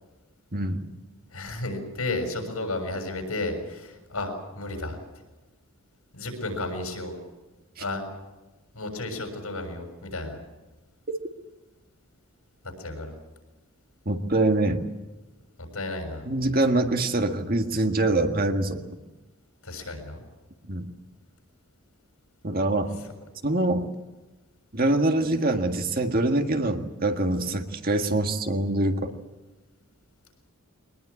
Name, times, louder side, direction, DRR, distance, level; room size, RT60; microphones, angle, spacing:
voice 1, 1.3-5.0 6.1-7.1 7.8-8.1 8.7-10.4 12.8-13.2 15.6-16.3 19.6-20.2, left 2 dB, 85° left, 4 dB, 6.8 m, -33 dB
voice 2, 14.1-14.8 16.3-18.8 20.7-20.9 22.4-22.9 23.4-23.9 24.7-29.1, right 2 dB, 45° right, 5 dB, 1.8 m, -24 dB
23.5 x 20.0 x 8.5 m, 1.1 s
head